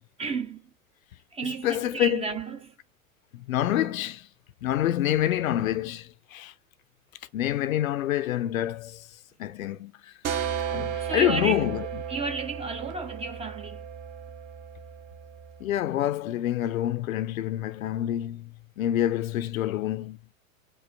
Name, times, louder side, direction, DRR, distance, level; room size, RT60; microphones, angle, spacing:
voice 1, 0.2-0.6 1.3-2.7 11.0-11.6 12.1-13.8, right 4 dB, 15° right, 0.5 m, -32 dB
voice 2, 1.4-2.4 3.3-4.3 4.6-6.5 7.3-9.1 9.4-10.1 10.7-12.0 15.6-20.2, left 12 dB, 75° left, 0.6 m, -27 dB
sound 1, 10.2-15.7, right 8 dB, 35° right, 0.9 m, -34 dB
5.3 x 2.1 x 4.6 m
hypercardioid pair, 90°, 42 cm